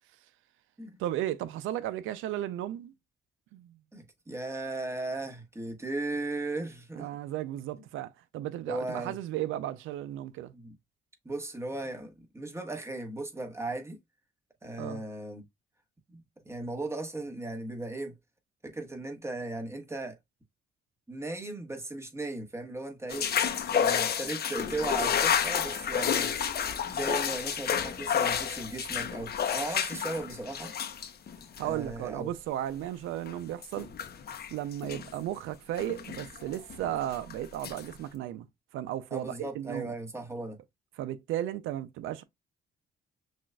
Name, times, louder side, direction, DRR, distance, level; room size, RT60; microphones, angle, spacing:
voice 1, 1.0-2.9 3.5-3.8 7.0-10.5 14.8-15.0 31.6-33.9 34.5-38.5 38.7-39.9 41.0-42.2, right 12 dB, 85° right, 0.4 m, -35 dB
voice 2, 3.9-7.1 8.7-9.2 10.5-10.7 11.2-14.0 14.6-15.4 16.1-18.2 18.6-20.2 21.1-23.3 23.7-26.3 26.9-30.7 31.6-32.3 39.1-40.6, right 2 dB, 15° right, 1.3 m, -37 dB
sound 1, 23.1-31.9 33.3-33.4 33.6-35.2 35.8-37.3 37.6-37.9, left 8 dB, 50° left, 0.7 m, -30 dB
6.0 x 2.5 x 2.2 m
cardioid pair, 90°, 20 cm